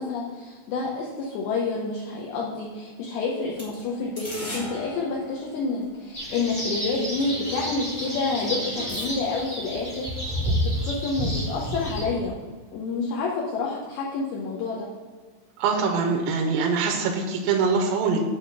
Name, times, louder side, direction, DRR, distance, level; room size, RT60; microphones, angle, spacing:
voice 1, 0.0-12.3 12.7-14.9, left 4 dB, 75° left, -3 dB, 2.3 m, -29 dB
sound 1, 3.5-6.2 6.8-6.9 7.2-9.1, equal, 45° left, 0.9 m, -40 dB
sound 2, 6.1-12.0, equal, 15° left, 0.9 m, -30 dB
voice 2, 15.6-18.2, right 5 dB, 80° right, 1 dB, 2.6 m, -23 dB
8.8 x 3.6 x 6.8 m, 1.4 s
omnidirectional pair, 5.4 m